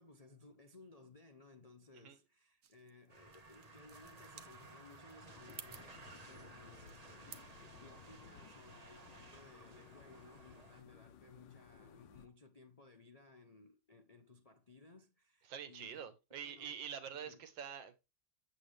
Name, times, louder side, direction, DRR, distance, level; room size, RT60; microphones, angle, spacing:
voice 1, 0.0-16.1 16.4-16.8 17.1-17.5, left 3 dB, 35° left, 0.5 m, -60 dB
sound 1, 2.6-7.6, right 8 dB, 55° right, 1.1 m, -57 dB
sound 2, 3.1-10.8, right 3 dB, 25° right, 0.9 m, -57 dB
sound 3, 5.3-12.3, left 8 dB, 80° left, 1.5 m, -59 dB
voice 2, 15.5-18.0, right 8 dB, 80° right, 1.8 m, -46 dB
8.2 x 8.0 x 3.3 m
omnidirectional pair, 2.0 m